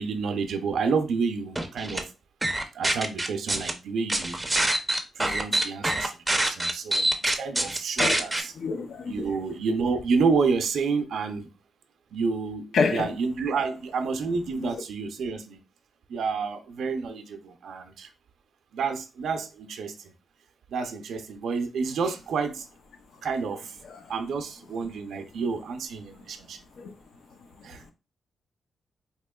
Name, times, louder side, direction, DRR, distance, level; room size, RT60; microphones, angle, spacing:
voice 1, 0.0-2.0 2.7-4.4 5.2-7.1 7.4-8.5 9.1-11.5 12.1-15.6 16.1-18.1 18.7-19.9 20.7-22.6 23.2-23.7 24.1-26.6 27.6-27.9, right 5 dB, 80° right, 0.5 m, -29 dB
sound 1, 1.6-2.0 2.4-3.7 4.1-8.4, right 1 dB, 10° right, 0.5 m, -25 dB
voice 2, 8.6-9.1 12.7-13.1 26.8-26.9, left 5 dB, 70° left, 0.6 m, -26 dB
4.3 x 2.9 x 2.2 m
wide cardioid pair, 125°, 0 cm